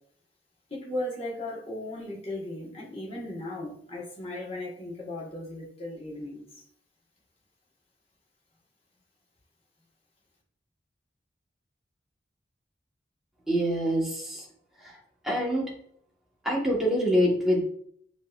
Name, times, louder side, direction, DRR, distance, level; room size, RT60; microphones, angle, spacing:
voice 1, 0.7-6.4, left 1 dB, 30° left, -4 dB, 1.3 m, -36 dB
voice 2, 13.5-14.4 14.8-15.0 15.2-15.6 16.4-17.6, equal, ahead, -5 dB, 1.2 m, -25 dB
7.1 x 3.0 x 2.4 m, 0.65 s
head